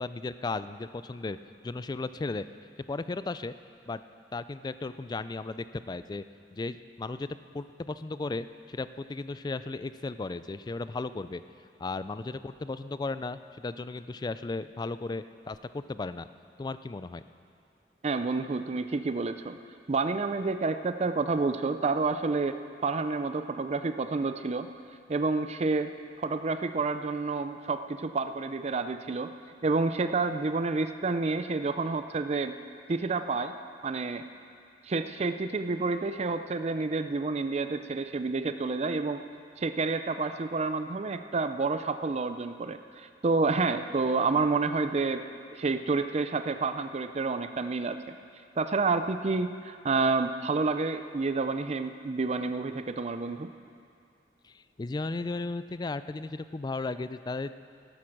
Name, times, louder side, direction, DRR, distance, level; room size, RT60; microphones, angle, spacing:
voice 1, 0.0-1.4 1.6-2.4 2.9-3.5 3.9-4.0 4.3-6.2 6.5-7.3 7.5-11.4 11.8-16.3 16.6-17.2 54.4-57.5, left 3 dB, 25° left, 13 dB, 0.3 m, -35 dB
voice 2, 18.0-19.6 19.9-22.6 22.8-24.7 25.1-25.9 26.2-29.3 29.6-32.6 32.9-33.5 33.8-34.2 34.8-39.2 39.6-45.2 45.5-48.0 48.6-53.5, right 3 dB, 40° right, 9 dB, 0.5 m, -29 dB
13.0 x 11.5 x 6.0 m, 2.3 s
head